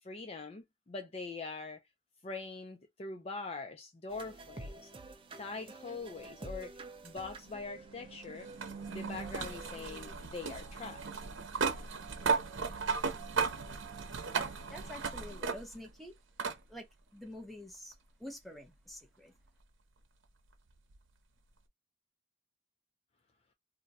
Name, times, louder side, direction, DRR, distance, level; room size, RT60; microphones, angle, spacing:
voice 1, 0.0-1.8 2.2-4.9 5.4-6.8 7.0-8.5 8.9-11.3, left 3 dB, 30° left, 0.4 m, -43 dB
sound 1, 4.1-10.1, right 2 dB, 30° right, 0.5 m, -49 dB
sound 2, 7.0-15.9 16.4-16.6 17.9-18.0 20.9-21.0, right 5 dB, 90° right, 0.7 m, -36 dB
voice 2, 14.7-16.1 16.7-16.8 17.1-19.3, left 1 dB, ahead, 0.8 m, -48 dB
2.5 x 2.2 x 4.0 m
head